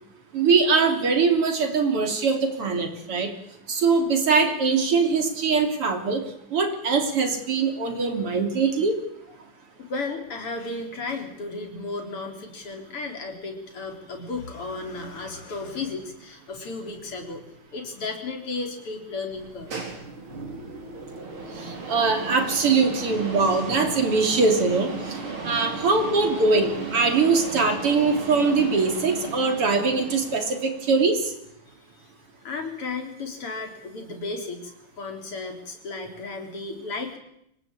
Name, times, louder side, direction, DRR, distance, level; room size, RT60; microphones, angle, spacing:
voice 1, 0.3-3.3 3.7-6.2 6.5-9.0 21.5-25.2 25.4-31.3, right 4 dB, 90° right, 5 dB, 4.1 m, -22 dB
voice 2, 9.8-19.7 31.7-32.0 32.4-37.2, left 3 dB, 85° left, 4 dB, 4.6 m, -34 dB
sound 1, 19.3-30.9, right 4 dB, 75° right, 4.8 m, -35 dB
25.0 x 18.5 x 8.9 m, 0.77 s
omnidirectional pair, 2.4 m